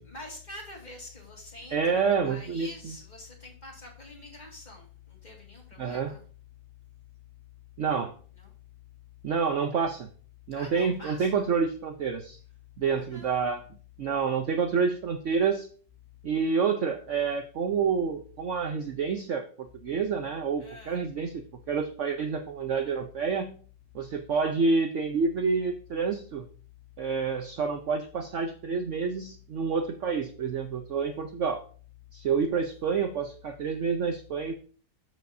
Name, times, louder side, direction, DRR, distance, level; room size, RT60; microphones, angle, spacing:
voice 1, 0.0-6.2 8.3-8.5 10.5-11.5 12.8-13.4 20.6-21.0, left 2 dB, 25° left, -1 dB, 2.1 m, -46 dB
voice 2, 1.7-2.9 5.8-6.1 7.8-8.1 9.2-10.1 10.5-12.4 12.8-13.6 14.0-15.7 16.2-23.5 23.9-26.4 27.0-31.6 32.1-34.5, right 5 dB, 75° right, 6 dB, 0.6 m, -28 dB
13.5 x 5.1 x 2.6 m, 0.42 s
omnidirectional pair, 2.1 m